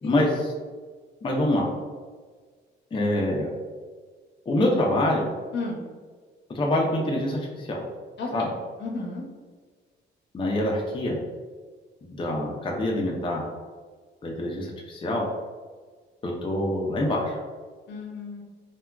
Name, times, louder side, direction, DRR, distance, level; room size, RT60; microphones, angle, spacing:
voice 1, 0.0-0.5 1.2-1.7 2.9-3.5 4.5-5.3 6.5-7.8 8.3-8.5 10.3-11.2 12.0-13.5 14.2-15.2 16.2-17.4, left 1 dB, 25° left, -2 dB, 0.5 m, -25 dB
voice 2, 8.2-8.5 8.8-9.2 17.9-18.4, left 3 dB, 65° left, -1 dB, 0.7 m, -33 dB
3.4 x 2.2 x 2.3 m, 1.5 s
cardioid pair, 90°, 20 cm